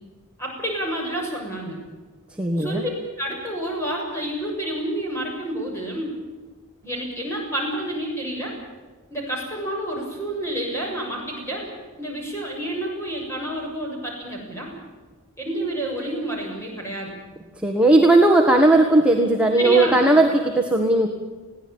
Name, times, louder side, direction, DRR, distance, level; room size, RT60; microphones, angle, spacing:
voice 1, 0.4-1.8 2.6-2.9 3.2-6.1 6.8-8.5 9.1-11.7 12.0-14.7 15.4-17.1 19.6-20.0, right 1 dB, 10° left, -1 dB, 7.0 m, -29 dB
voice 2, 2.4-2.8 17.6-21.1, right 2 dB, 5° right, 2 dB, 1.5 m, -17 dB
21.5 x 16.5 x 8.9 m, 1.3 s
head